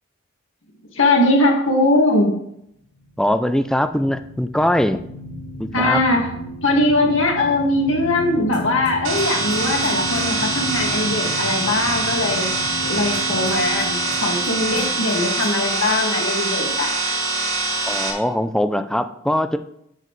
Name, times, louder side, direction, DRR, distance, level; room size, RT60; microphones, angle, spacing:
voice 1, 0.9-2.3 5.7-6.3 6.6-12.5 12.8-16.9, left 2 dB, 65° left, 1 dB, 2.2 m, -20 dB
sound 1, 2.9-16.6, equal, 85° left, 1.5 m, -34 dB
voice 2, 3.2-5.0 5.6-6.0 17.9-19.6, left 1 dB, 5° left, 10 dB, 0.5 m, -21 dB
sound 2, 8.5-10.2 13.1-14.5 14.8-15.2 15.4-15.5, right 1 dB, 20° right, 1.8 m, -39 dB
sound 3, 9.0-18.1, right 3 dB, 90° right, 3.7 m, -24 dB
10.5 x 8.7 x 3.3 m, 0.74 s
head